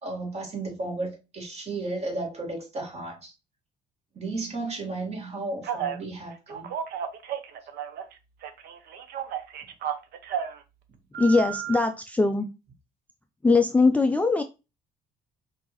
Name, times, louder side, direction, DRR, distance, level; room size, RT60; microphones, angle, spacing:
voice 1, 0.0-3.3 4.1-6.7, right 2 dB, 40° right, 1.9 m, -34 dB
Telephone, 5.6-6.0 6.5-8.1 8.4-10.6 11.1-11.8, right 9 dB, 70° right, 0.6 m, -33 dB
voice 2, 11.2-12.5 13.4-14.4, left 3 dB, 10° left, 0.3 m, -21 dB
5.2 x 2.7 x 3.0 m
cardioid pair, 110°, 17 cm